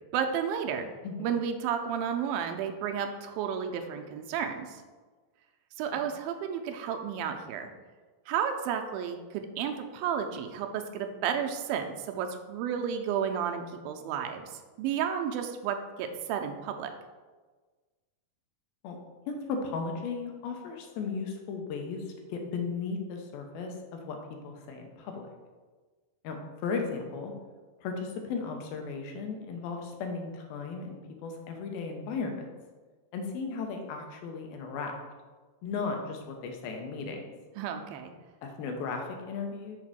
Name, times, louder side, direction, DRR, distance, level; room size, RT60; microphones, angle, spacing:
voice 1, 0.1-0.9 1.2-4.8 5.8-7.7 8.3-14.5 14.8-16.9 37.6-38.1, right 8 dB, 85° right, 5 dB, 2.4 m, -32 dB
voice 2, 19.3-24.2 24.4-25.3 26.2-26.4 26.6-27.3 27.8-32.5 33.1-34.9 35.6-37.2 38.4-39.8, left 4 dB, 90° left, 3 dB, 2.8 m, -36 dB
6.5 x 4.1 x 6.1 m, 1.4 s
omnidirectional pair, 4.1 m